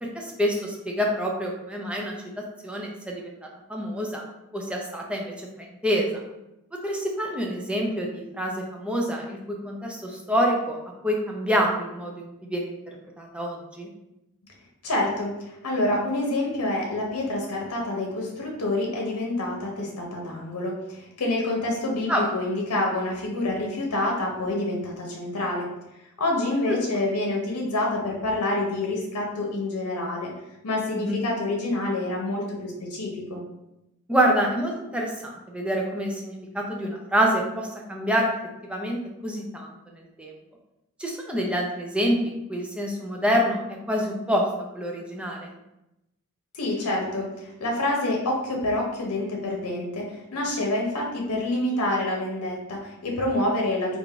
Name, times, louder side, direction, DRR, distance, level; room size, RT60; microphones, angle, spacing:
voice 1, 0.0-2.1 2.6-3.2 3.7-4.2 4.5-6.2 6.8-10.8 11.0-12.8 13.2-13.9 22.1-22.3 26.7-26.8 30.9-31.2 34.1-38.3 38.6-40.3 41.0-44.4 44.7-45.5, equal, 5° right, -1 dB, 0.5 m, -27 dB
voice 2, 14.8-25.7 26.2-30.3 30.6-33.4 46.5-54.0, left 1 dB, 90° left, 0 dB, 0.8 m, -27 dB
3.6 x 2.5 x 3.4 m, 0.90 s
head